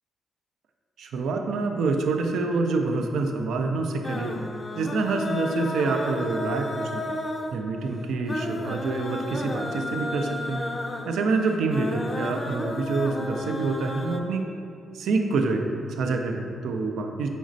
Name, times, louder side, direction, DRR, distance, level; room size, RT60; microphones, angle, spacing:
voice 1, 1.0-4.4 4.7-7.1 7.5-10.7 11.1-14.5 14.9-17.3, right 3 dB, 80° right, 4 dB, 0.3 m, -26 dB
sound 1, 4.0-14.2, left 2 dB, 35° left, 0.4 m, -33 dB
5.1 x 3.1 x 2.5 m, 2.4 s
supercardioid pair, 55°, 0 cm